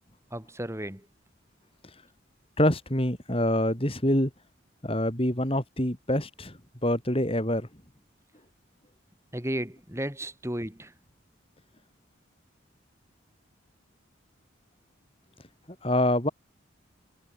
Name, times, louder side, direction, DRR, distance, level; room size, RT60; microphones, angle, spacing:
voice 1, 0.3-1.0 9.3-10.9, right 1 dB, 15° right, 5.0 m, -34 dB
voice 2, 2.6-4.3 4.8-7.7 15.8-16.3, left 1 dB, 30° left, 4.8 m, -26 dB
head